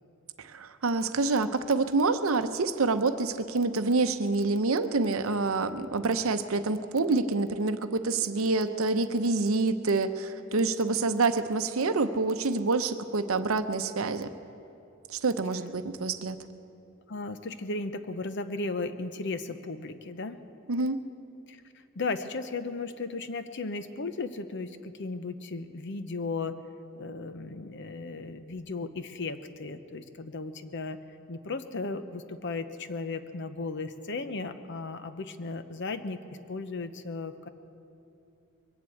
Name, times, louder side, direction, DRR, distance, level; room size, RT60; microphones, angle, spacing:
voice 1, 0.4-14.3 15.1-16.4 20.7-21.0, right 3 dB, 75° right, 10 dB, 0.7 m, -27 dB
voice 2, 17.1-20.4 21.5-21.6 22.0-26.6 27.0-31.0 31.3-36.2 36.5-37.5, left 3 dB, 55° left, 10 dB, 0.7 m, -35 dB
22.0 x 7.8 x 8.5 m, 2.7 s
head